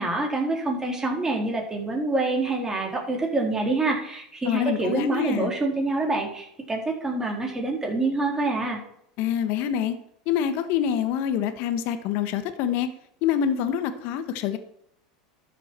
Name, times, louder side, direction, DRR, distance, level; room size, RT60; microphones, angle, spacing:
voice 1, 0.0-8.8, right 2 dB, 15° right, 0 dB, 3.9 m, -26 dB
voice 2, 4.4-5.5 9.2-10.0 10.3-12.9 13.2-14.6, left 9 dB, 60° left, 10 dB, 1.4 m, -26 dB
12.5 x 7.2 x 4.6 m, 0.70 s
hypercardioid pair, 95°, 4 cm